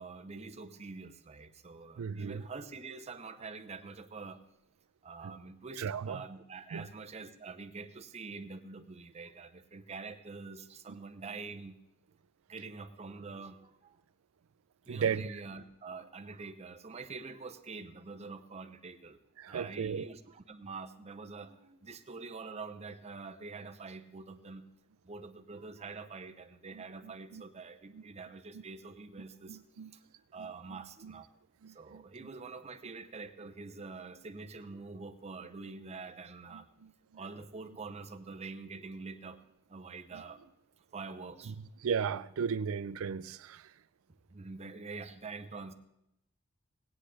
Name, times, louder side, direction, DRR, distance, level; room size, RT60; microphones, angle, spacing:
voice 1, 0.0-4.4 5.0-11.8 12.5-14.0 14.9-19.2 19.5-24.7 25.0-29.6 29.9-30.0 30.3-31.3 31.7-36.7 37.1-39.4 39.7-40.4 40.9-41.6 44.3-45.7, right 4 dB, 30° right, 0.7 m, -45 dB
voice 2, 2.0-2.4 5.2-5.4 5.8-6.2 6.7-6.9 14.9-15.2 19.4-20.1 26.7-27.4 27.9-28.0 28.5-28.6 29.5-29.9 30.7-31.2 31.6-32.0 36.5-36.9 40.1-40.2 41.5-41.6 41.8-43.7, right 6 dB, 85° right, 0.4 m, -36 dB
16.5 x 9.7 x 3.3 m
head